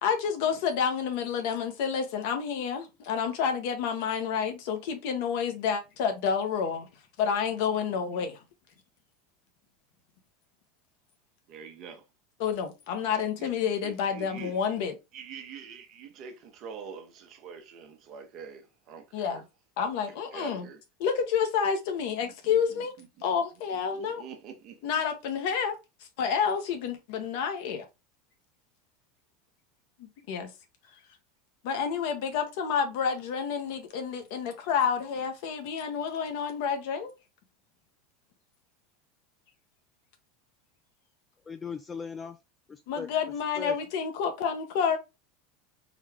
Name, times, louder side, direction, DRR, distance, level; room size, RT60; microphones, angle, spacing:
voice 1, 0.0-6.9 7.2-8.4 12.4-14.9 19.1-19.4 19.8-20.7 21.0-22.9 23.2-24.2 24.8-25.7 26.2-27.8 30.0-30.5 31.6-37.1 42.9-45.0, left 7 dB, 70° left, 0.9 m, -29 dB
voice 2, 11.5-12.0 13.4-13.5 13.8-14.6 15.1-19.4 20.3-20.8 22.2-22.8 23.9-24.8, right 6 dB, 50° right, 0.9 m, -45 dB
voice 3, 41.5-42.4 42.7-43.1 43.6-43.7, left 5 dB, 20° left, 0.3 m, -38 dB
3.9 x 2.2 x 3.3 m
hypercardioid pair, 100°, 0 cm